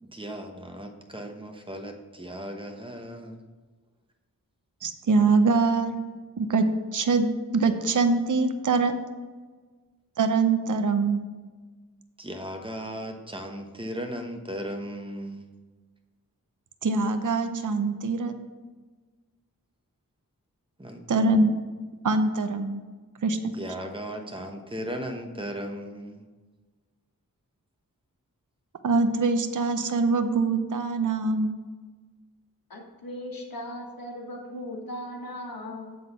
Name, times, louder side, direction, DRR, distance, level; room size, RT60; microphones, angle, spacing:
voice 1, 0.0-3.4 12.2-15.5 20.8-21.2 23.5-26.3, equal, 15° right, 4 dB, 1.1 m, -36 dB
voice 2, 4.8-6.0 6.4-7.2 7.5-8.9 10.2-11.2 16.8-18.4 21.1-21.5 22.0-22.8 23.2-23.5 28.8-31.6, right 3 dB, 60° right, 8 dB, 0.7 m, -23 dB
voice 3, 32.7-36.0, left 1 dB, 80° left, 1 dB, 1.5 m, -38 dB
7.7 x 4.0 x 6.7 m, 1.4 s
wide cardioid pair, 60°, 34 cm